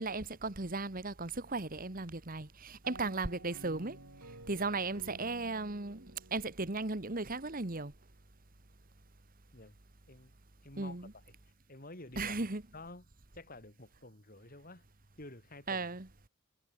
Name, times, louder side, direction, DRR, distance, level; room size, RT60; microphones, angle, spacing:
voice 1, 0.0-4.0 4.5-7.9 10.8-11.1 12.2-12.6 15.7-16.1, right 3 dB, 40° right, 1.6 m, -36 dB
sound 1, 2.8-7.5, right 1 dB, 80° right, 7.8 m, -53 dB
voice 2, 10.1-10.4 10.6-11.0 11.7-12.3 12.7-13.0 13.3-14.8 15.2-15.9, left 2 dB, 40° left, 4.4 m, -50 dB
head